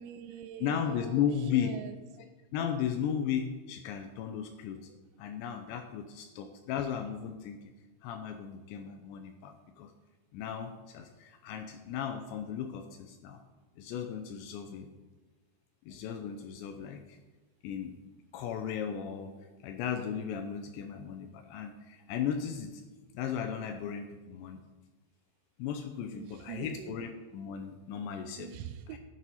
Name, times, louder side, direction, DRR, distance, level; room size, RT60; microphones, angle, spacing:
voice 1, 0.0-2.0 4.9-5.0 15.9-16.0 16.6-16.9 26.1-26.9 28.4-29.0, right 10 dB, 85° right, 9 dB, 2.8 m, -45 dB
voice 2, 0.6-1.8 2.2-4.8 5.2-7.6 8.0-9.9 10.3-13.4 13.8-14.9 15.9-17.2 17.6-18.0 18.3-19.3 19.6-22.8 23.1-24.6 25.6-28.5, left 8 dB, 80° left, 6 dB, 2.6 m, -35 dB
13.5 x 7.8 x 4.1 m, 1.3 s
omnidirectional pair, 5.6 m